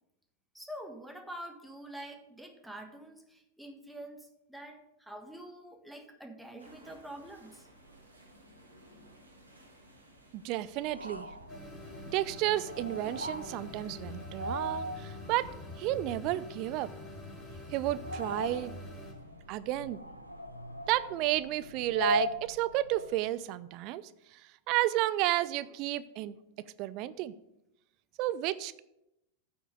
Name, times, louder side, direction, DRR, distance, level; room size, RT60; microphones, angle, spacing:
voice 1, 0.5-7.7, right 1 dB, ahead, 3 dB, 1.3 m, -46 dB
sound 1, 6.6-21.5, right 1 dB, 85° right, 1.9 m, -59 dB
voice 2, 10.3-11.3 12.1-15.5 15.8-16.9 17.7-18.8 19.5-20.0 20.9-24.0 24.3-26.4 26.8-27.3 28.2-28.8, right 15 dB, 40° right, 17 dB, 0.4 m, -32 dB
sound 2, 10.8-23.4, equal, 90° left, 0.6 m, -40 dB
sound 3, 11.5-19.1, left 1 dB, 20° left, 3.4 m, -45 dB
9.0 x 4.6 x 6.5 m, 0.85 s
figure-of-eight pair, 90°, 0 cm